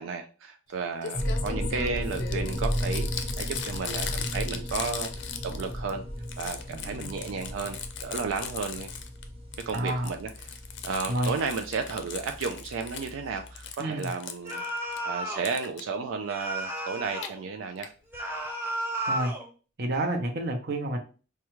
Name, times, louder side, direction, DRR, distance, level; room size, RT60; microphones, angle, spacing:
voice 1, 0.0-6.0 6.4-9.0 9.6-10.6 10.8-14.6 15.1-17.9, right 5 dB, 85° right, 6 dB, 0.4 m, -33 dB
Crumpling crinkling, 0.7-0.8 1.0-5.9 6.2-9.2 9.5-13.1 13.5-15.0 15.4-15.8 16.9-17.3 17.8-17.9 18.1-18.2 18.4-18.5, left 7 dB, 65° left, 0.5 m, -38 dB
sound 1, 1.1-13.7, equal, 30° right, 1.0 m, -35 dB
voice 2, 6.7-7.2 9.7-10.1 11.1-11.3 13.8-14.1 19.1-19.3 19.8-21.0, right 1 dB, 55° right, 4 dB, 0.8 m, -29 dB
sound 2, 14.4-15.5 16.3-17.4 18.1-19.5, right 1 dB, 10° right, 0.7 m, -33 dB
4.8 x 2.2 x 3.0 m, 0.36 s
head